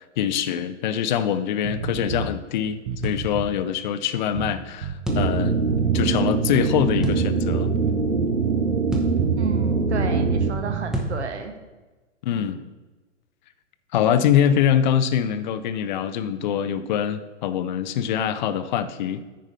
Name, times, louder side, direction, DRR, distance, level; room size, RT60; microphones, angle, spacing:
voice 1, 0.2-5.5 5.9-7.7 12.2-12.6 13.9-19.2, left 9 dB, 40° left, 11 dB, 0.5 m, -24 dB
sound 1, 1.6-2.3 2.8-3.6 4.3-5.3 5.7-7.1 7.5-8.5 9.2-11.2, right 7 dB, 35° right, 0.8 m, -31 dB
sound 2, 3.0-3.3 5.1-5.3 7.0-7.2 8.9-9.2 10.9-11.2, right 1 dB, ahead, 0.8 m, -28 dB
sound 3, 5.1-10.5, right 4 dB, 90° right, 0.8 m, -23 dB
voice 2, 9.4-11.5, right 5 dB, 65° right, 6 dB, 1.3 m, -31 dB
9.3 x 4.9 x 5.5 m, 1.2 s
figure-of-eight pair, 115°, 37 cm